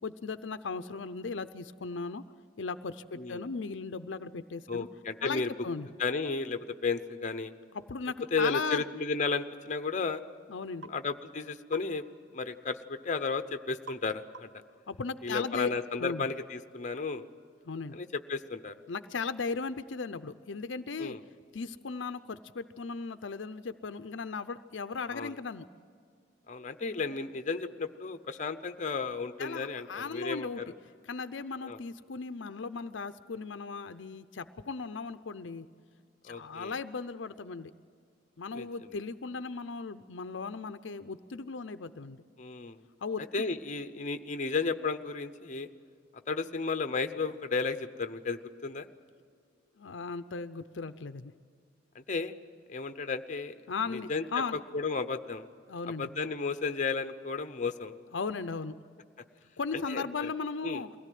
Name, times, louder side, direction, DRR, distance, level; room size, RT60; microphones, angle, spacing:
voice 1, 0.0-2.2 2.6-4.9 5.2-5.9 7.7-8.8 10.5-10.9 14.9-15.7 16.0-16.2 17.7-17.9 18.9-21.2 21.5-25.7 29.4-30.6 31.1-35.7 36.2-37.7 38.4-42.2 43.0-43.4 49.8-51.3 53.7-54.6 55.7-56.1 58.1-58.7 59.6-60.9, left 4 dB, 75° left, 11 dB, 0.6 m, -37 dB
voice 2, 4.7-5.5 6.0-7.5 8.3-10.2 10.9-12.0 12.3-14.5 15.2-17.2 17.9-18.8 21.0-21.2 25.1-25.4 26.5-30.7 31.6-31.8 36.2-36.8 38.5-38.9 42.4-42.8 43.2-45.7 46.3-48.9 51.9-52.3 52.7-53.6 53.9-54.2 54.5-55.5 55.9-57.9 59.7-60.3 60.6-60.8, left 4 dB, 40° left, 9 dB, 0.8 m, -33 dB
sound 1, 10.8-11.0 11.7-11.9 13.9-14.1 14.3-14.7, right 5 dB, 70° right, 1.0 m, -47 dB
22.5 x 17.0 x 9.3 m, 2.2 s
head